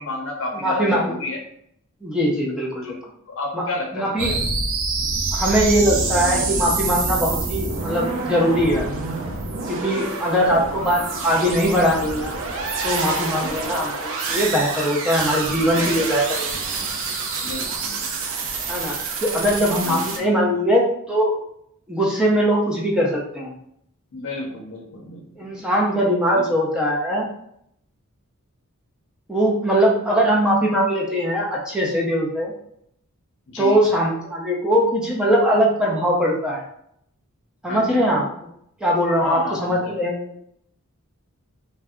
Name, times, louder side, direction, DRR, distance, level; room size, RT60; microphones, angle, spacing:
voice 1, 0.0-1.4 2.8-2.9 3.3-4.4 9.8-10.2 13.3-13.7 15.7-16.0 17.4-18.0 19.3-19.5 19.8-20.3 24.1-25.6 26.3-26.4 33.5-33.8 37.7-38.1 39.2-40.0, left 2 dB, 60° left, 2 dB, 0.6 m, -32 dB
voice 2, 0.5-1.2 2.0-3.0 3.5-3.6 3.9-4.3 5.3-8.9 9.7-12.3 12.8-16.9 18.7-19.0 19.2-20.8 21.1-21.4 21.9-23.5 25.4-27.3 29.3-32.5 33.6-36.6 37.6-38.5 38.8-40.3, equal, 5° right, -4 dB, 0.5 m, -21 dB
sound 1, 4.2-20.2, right 4 dB, 60° right, 0.4 m, -27 dB
2.6 x 2.1 x 3.5 m, 0.72 s
head